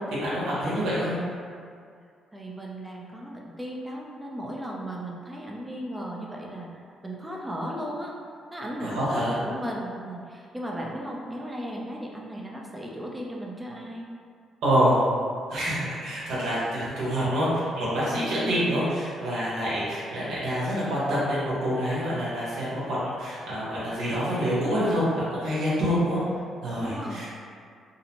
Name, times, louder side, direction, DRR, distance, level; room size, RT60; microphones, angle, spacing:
voice 1, 0.1-1.2 8.8-9.4 14.6-15.0 15.5-17.5 17.8-26.2 26.6-27.3, equal, 85° right, -9 dB, 0.8 m, -26 dB
voice 2, 2.3-6.7 7.0-8.2 8.5-14.1 18.1-18.7 26.6-27.3, equal, 15° right, -2 dB, 0.4 m, -36 dB
2.6 x 2.0 x 2.8 m, 2.2 s
cardioid pair, 90°, 0 cm